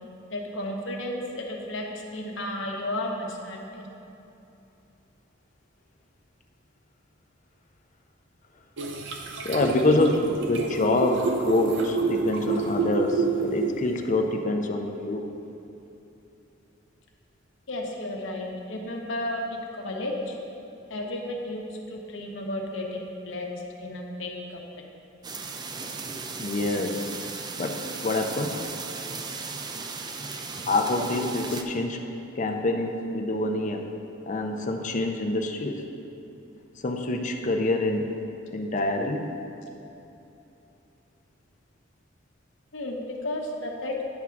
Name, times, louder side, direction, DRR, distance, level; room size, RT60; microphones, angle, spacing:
voice 1, 0.3-3.9 17.7-20.3 20.9-24.6 42.7-43.9, left 1 dB, 70° left, 1 dB, 0.9 m, -33 dB
sound 1, 8.8-14.1, right 4 dB, 65° right, 0.6 m, -28 dB
voice 2, 9.4-15.3 26.4-27.1 27.6-27.8 28.0-28.5 30.7-32.0 32.4-33.8 34.3-35.8 36.8-38.1 38.5-39.3, left 2 dB, 40° left, 3 dB, 0.5 m, -26 dB
sound 2, 25.2-31.6, right 4 dB, 20° right, 0.4 m, -36 dB
9.6 x 3.6 x 5.8 m, 2.9 s
head